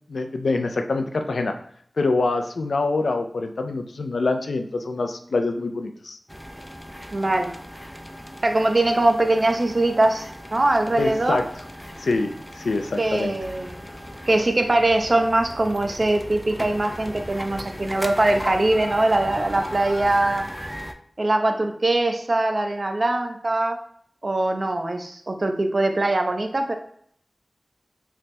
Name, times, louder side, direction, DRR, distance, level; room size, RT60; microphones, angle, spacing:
voice 1, 0.1-1.5 2.0-6.2 11.0-11.4 12.0-13.4, left 3 dB, 90° left, 6 dB, 0.3 m, -25 dB
sound 1, 6.3-20.9, equal, 5° left, 0.3 m, -37 dB
voice 2, 7.1-7.5 8.4-11.4 13.0-13.8 14.3-20.5 21.2-23.8 24.2-26.7, right 2 dB, 55° right, 5 dB, 0.5 m, -22 dB
sound 2, 13.6-20.4, left 1 dB, 45° left, 0.9 m, -44 dB
3.3 x 2.0 x 4.1 m, 0.65 s
cardioid pair, 40°, 0 cm